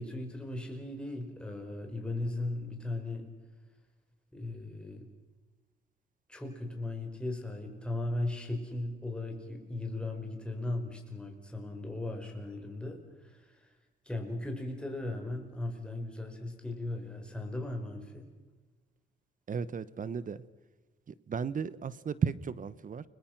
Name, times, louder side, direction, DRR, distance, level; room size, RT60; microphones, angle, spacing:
voice 1, 0.0-3.3 4.3-5.1 6.3-13.7 14.1-18.3, left 2 dB, 5° left, 2 dB, 5.2 m, -37 dB
voice 2, 19.5-20.4 21.1-23.0, right 6 dB, 40° right, 18 dB, 1.1 m, -34 dB
30.0 x 21.5 x 6.1 m, 1.3 s
cardioid pair, 90°, 20 cm